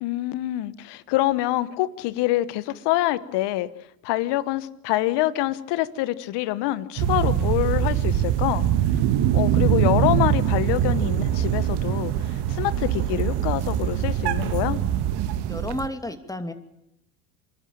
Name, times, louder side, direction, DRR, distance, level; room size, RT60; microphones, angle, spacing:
voice 1, 0.0-3.7 4.0-8.6 9.3-12.1 12.5-14.8, left 16 dB, 60° left, 16 dB, 1.3 m, -25 dB
sound 1, 7.0-15.9, right 10 dB, 60° right, 1.5 m, -23 dB
voice 2, 15.5-16.5, left 1 dB, 5° left, 7 dB, 2.5 m, -31 dB
27.0 x 12.0 x 8.9 m, 0.84 s
supercardioid pair, 85°, 46 cm